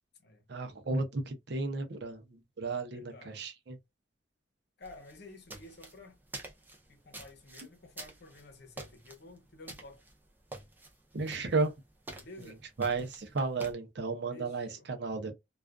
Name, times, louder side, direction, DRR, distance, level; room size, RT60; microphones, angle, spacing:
voice 1, 0.5-3.8 11.1-11.7 12.8-15.3, right 3 dB, 60° right, 0.6 m, -33 dB
voice 2, 2.9-3.4 4.8-6.2 6.9-10.0 12.1-12.6 14.3-14.9, left 2 dB, 60° left, 0.8 m, -52 dB
sound 1, 4.8-13.7, right 2 dB, 10° right, 0.5 m, -49 dB
2.3 x 2.3 x 2.2 m
head